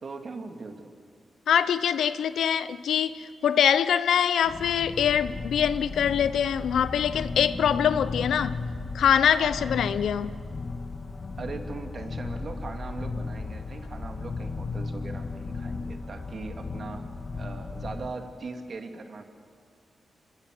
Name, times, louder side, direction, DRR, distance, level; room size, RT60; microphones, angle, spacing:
voice 1, 0.0-0.9 9.4-9.7 11.4-17.0 17.4-19.2, right 3 dB, 55° right, 2.5 m, -39 dB
voice 2, 1.5-8.6 8.9-10.3, left 8 dB, 85° left, 0.7 m, -24 dB
sound 1, 4.4-18.1, left 3 dB, 50° left, 2.0 m, -35 dB
25.5 x 21.0 x 7.8 m
cardioid pair, 80°, 0 cm